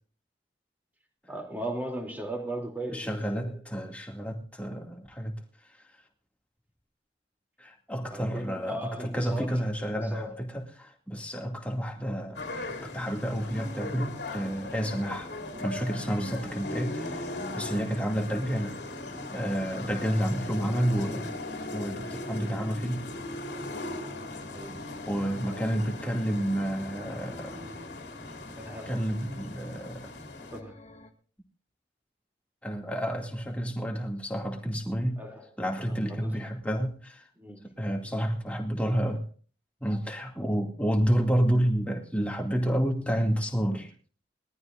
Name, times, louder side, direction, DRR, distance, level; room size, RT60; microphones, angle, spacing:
voice 1, 1.3-3.5 8.1-9.6 10.0-10.4 24.5-24.8 25.8-25.9 28.6-28.9 30.5-30.8 35.2-35.5 35.8-35.9 36.2-36.4 37.4-37.6, right 1 dB, 10° right, 2.9 m, -37 dB
voice 2, 2.9-5.9 7.6-15.3 15.6-18.8 19.3-21.4 21.7-23.1 25.1-27.7 28.9-30.1 32.6-35.2 35.6-37.3 37.6-39.2 39.8-43.9, equal, 10° left, 2.3 m, -30 dB
sound 1, 12.3-30.6, left 2 dB, 80° left, 2.5 m, -39 dB
sound 2, 12.4-31.1, left 2 dB, 35° left, 1.7 m, -51 dB
22.0 x 14.0 x 2.6 m
head